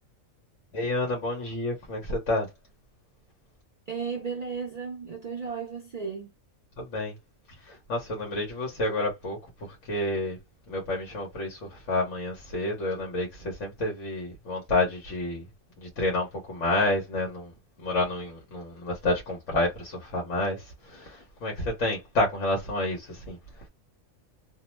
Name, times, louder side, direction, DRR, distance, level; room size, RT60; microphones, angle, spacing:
voice 1, 0.7-2.5 6.8-7.1 7.6-9.4 9.9-10.4 10.7-15.4 15.8-17.5 17.8-23.4, left 2 dB, 70° left, 1.3 m, -29 dB
voice 2, 3.9-6.3, right 5 dB, 65° right, 0.4 m, -34 dB
2.8 x 2.0 x 3.0 m
omnidirectional pair, 1.4 m